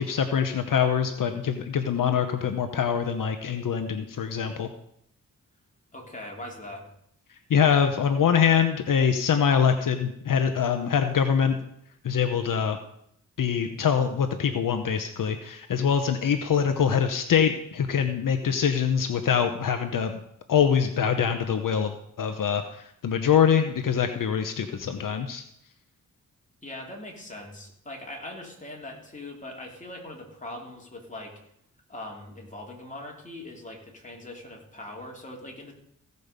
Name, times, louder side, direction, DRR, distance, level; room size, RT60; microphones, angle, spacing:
voice 1, 0.0-4.7 7.5-11.6 12.0-12.8 13.4-20.2 20.5-25.4, left 7 dB, 70° left, 7 dB, 0.9 m, -24 dB
voice 2, 5.9-6.9 26.6-31.3 31.9-35.7, left 1 dB, 20° left, -1 dB, 3.0 m, -41 dB
16.0 x 5.4 x 6.7 m, 0.73 s
wide cardioid pair, 100°, 33 cm